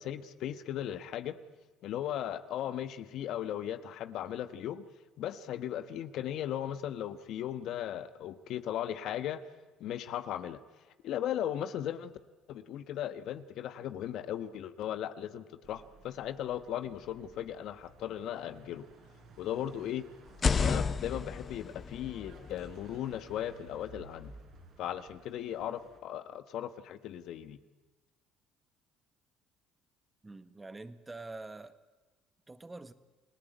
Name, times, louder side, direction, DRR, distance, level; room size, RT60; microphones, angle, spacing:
voice 1, 0.0-1.4 1.8-4.8 5.2-9.4 9.8-10.6 11.0-12.1 12.5-18.9 19.4-20.1 20.6-24.3 24.8-27.6, left 11 dB, 65° left, 11 dB, 1.4 m, -37 dB
sound 1, 15.6-26.0, right 3 dB, 60° right, 5.9 m, -57 dB
sound 2, 20.2-24.1, left 5 dB, 35° left, 1.2 m, -33 dB
voice 2, 30.2-31.8 32.5-32.9, right 2 dB, 20° right, 11 dB, 1.7 m, -45 dB
30.0 x 18.0 x 9.3 m, 1.2 s
supercardioid pair, 75°, 0 cm